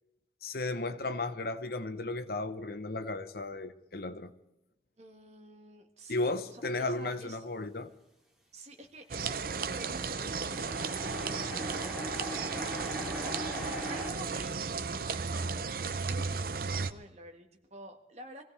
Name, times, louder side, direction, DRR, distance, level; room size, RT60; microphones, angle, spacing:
voice 1, 0.4-4.3 6.1-7.9, left 2 dB, 60° left, 0.9 m, -34 dB
voice 2, 5.0-7.4 8.5-18.4, right 1 dB, 40° right, 1.7 m, -50 dB
sound 1, 9.1-16.9, right 5 dB, 55° right, 0.6 m, -35 dB
sound 2, 9.4-14.1, equal, ahead, 2.7 m, -39 dB
25.0 x 16.5 x 3.4 m
head